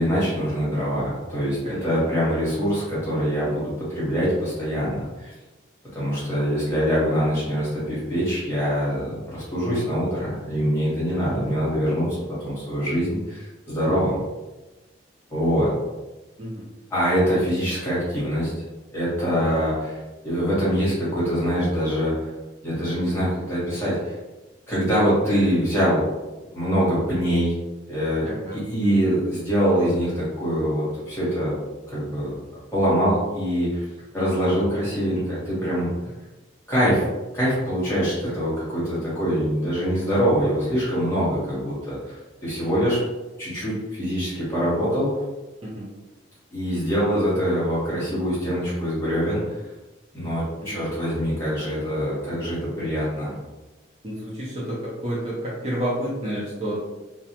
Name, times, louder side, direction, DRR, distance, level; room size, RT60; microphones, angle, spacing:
voice 1, 0.0-5.3 5.9-12.2 12.4-14.2 15.3-15.7 16.9-18.5 18.9-22.3 22.6-24.1 24.7-26.0 26.5-27.5 27.9-31.5 31.9-32.3 32.7-33.8 34.1-35.9 36.7-37.0 37.3-42.2 42.4-43.0 43.4-45.1 46.5-49.6 50.1-53.3, equal, 10° left, -9 dB, 1.1 m, -24 dB
voice 2, 28.2-28.6 38.2-38.3 39.9-40.0 45.6-45.9 50.6-50.9 54.0-56.8, right 1 dB, 30° right, -7 dB, 0.5 m, -30 dB
2.3 x 2.1 x 2.8 m, 1.1 s
head